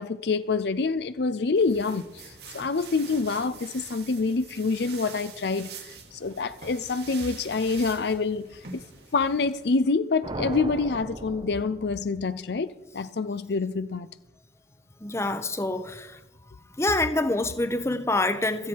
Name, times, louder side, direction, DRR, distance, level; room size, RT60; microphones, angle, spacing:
voice 1, 0.0-2.1 2.5-8.8 9.1-14.1, left 4 dB, 65° left, 0.5 m, -26 dB
sound 1, 1.6-9.8, right 5 dB, 60° right, 2.0 m, -45 dB
sound 2, 10.2-12.5, right 1 dB, 30° right, 0.8 m, -37 dB
voice 2, 15.0-16.2 16.8-18.7, left 2 dB, 15° left, 0.8 m, -26 dB
16.5 x 13.5 x 4.6 m
head